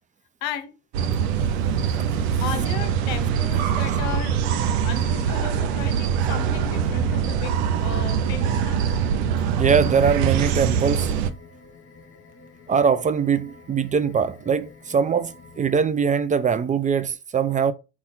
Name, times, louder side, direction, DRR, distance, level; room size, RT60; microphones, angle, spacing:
voice 1, 0.4-0.7 2.4-4.4 4.8-9.0, left 8 dB, 85° left, 0.7 m, -35 dB
sound 1, 0.9-11.3, right 8 dB, 85° right, 0.5 m, -23 dB
sound 2, 1.7-15.9, left 5 dB, 40° left, 1.0 m, -48 dB
voice 2, 9.6-11.1 12.7-17.7, right 6 dB, 25° right, 0.3 m, -22 dB
4.1 x 2.3 x 4.1 m
hypercardioid pair, 70°, 31 cm